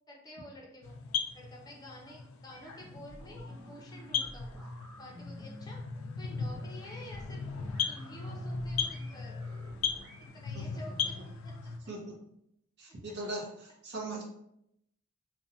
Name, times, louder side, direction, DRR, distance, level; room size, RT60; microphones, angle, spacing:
voice 1, 0.1-0.9 1.3-4.5 5.0-5.8 6.2-7.4 7.9-9.4 10.3-11.1 11.4-11.5, left 1 dB, 20° left, -2 dB, 0.5 m, -50 dB
sound 1, 0.8-11.8, left 6 dB, 80° left, 0.3 m, -37 dB
sound 2, 2.5-10.3, equal, 10° right, 1.3 m, -52 dB
voice 2, 12.8-14.2, right 2 dB, 55° right, -1 dB, 0.7 m, -39 dB
2.5 x 2.1 x 2.7 m, 0.77 s
head